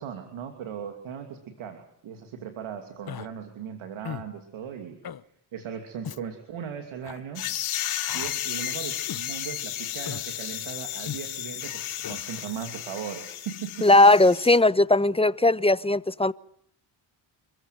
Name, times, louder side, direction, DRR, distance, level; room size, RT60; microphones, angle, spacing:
voice 1, 0.0-5.0 5.5-7.5 8.1-13.9, right 8 dB, 85° right, 2.8 m, -38 dB
Human voice, 3.1-3.3 4.0-4.3 5.0-5.2 6.0-6.2 7.0-7.2 8.1-8.4 9.1-9.3 10.1-10.3 11.1-11.2 12.0-12.2, left 9 dB, 50° left, 1.1 m, -37 dB
sound 1, 7.4-14.6, left 11 dB, 85° left, 3.2 m, -33 dB
voice 2, 13.8-16.3, left 2 dB, 10° left, 1.0 m, -18 dB
28.0 x 15.5 x 9.4 m
supercardioid pair, 55°, 47 cm